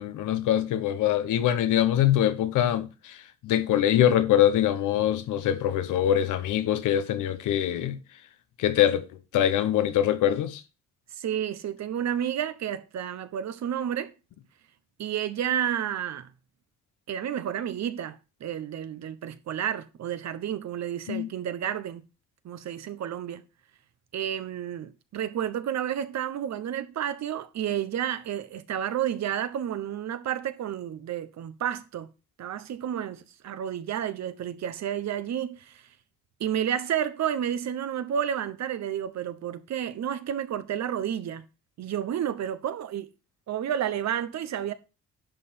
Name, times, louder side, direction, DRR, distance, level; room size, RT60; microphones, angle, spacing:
voice 1, 0.0-3.2 3.4-8.0 8.6-9.0 9.3-10.6 21.1-21.3, left 11 dB, 85° left, 1.1 m, -23 dB
voice 2, 11.2-14.1 15.0-16.3 17.1-22.0 22.4-23.4 24.1-32.1 32.4-35.8 36.4-41.4 41.8-43.1 43.5-44.7, right 9 dB, 65° right, 1.0 m, -31 dB
10.5 x 5.6 x 4.3 m
cardioid pair, 90°, 30 cm